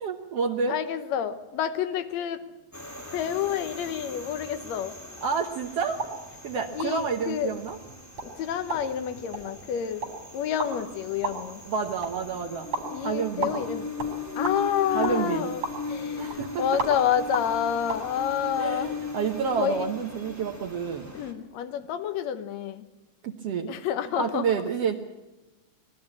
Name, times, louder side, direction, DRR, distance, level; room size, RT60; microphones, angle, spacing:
voice 1, 0.0-0.7 5.2-6.0 6.4-7.8 11.6-12.7 13.0-13.5 14.9-15.5 16.2-16.8 18.6-21.1 23.2-23.7 24.2-25.0, right 6 dB, 85° right, 2 dB, 1.3 m, -29 dB
voice 2, 0.7-2.4 3.1-5.0 6.7-7.5 8.2-10.1 10.3-11.6 12.9-13.9 14.4-19.0 19.6-19.9 21.1-22.9 23.7-24.6, left 9 dB, 80° left, 9 dB, 1.5 m, -29 dB
sound 1, 2.7-21.3, left 3 dB, 25° left, 0.3 m, -39 dB
sound 2, 5.9-18.0, right 4 dB, 35° right, 4.8 m, -37 dB
21.5 x 12.5 x 9.9 m, 1.1 s
omnidirectional pair, 4.5 m